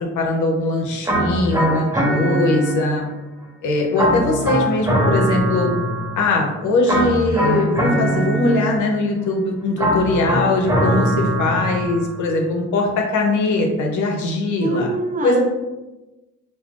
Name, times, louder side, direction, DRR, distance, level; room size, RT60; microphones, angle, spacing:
voice 1, 0.1-3.1 3.6-5.7 6.2-14.9 15.2-15.4, left 2 dB, 80° left, 1 dB, 0.7 m, -21 dB
sound 1, 1.0-3.1 4.0-6.3 6.9-9.0 9.8-12.2, right 1 dB, 10° right, 0.9 m, -21 dB
voice 2, 1.9-2.4 14.6-15.4, right 2 dB, 25° right, 1 dB, 0.4 m, -25 dB
2.4 x 2.1 x 3.6 m, 1.1 s
cardioid pair, 90°, 30 cm